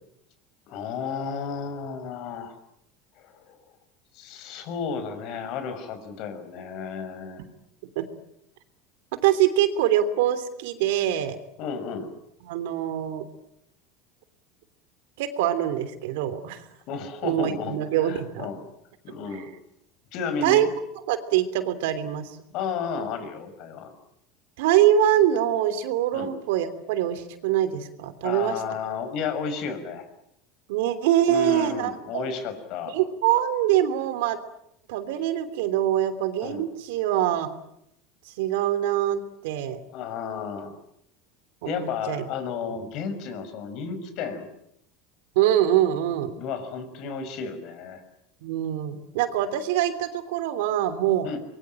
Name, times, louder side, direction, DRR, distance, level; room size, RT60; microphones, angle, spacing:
voice 1, 0.7-2.5 3.2-3.6 4.1-7.4 11.6-12.1 16.9-18.6 19.0-19.5 20.1-20.7 22.5-23.9 26.1-26.3 28.2-30.1 31.3-33.0 36.4-36.6 39.9-40.7 41.6-44.5 46.4-48.0 51.2-51.4, left 6 dB, 55° left, 10 dB, 6.0 m, -32 dB
voice 2, 9.2-11.4 12.4-13.3 15.2-16.6 17.2-18.5 20.4-20.7 21.1-22.4 24.6-28.5 30.7-32.2 32.9-34.4 34.9-37.5 38.2-39.8 41.6-42.2 45.3-46.3 48.4-51.3, right 11 dB, 80° right, 11 dB, 3.1 m, -24 dB
24.5 x 23.0 x 9.0 m, 0.77 s
supercardioid pair, 130°, 0 cm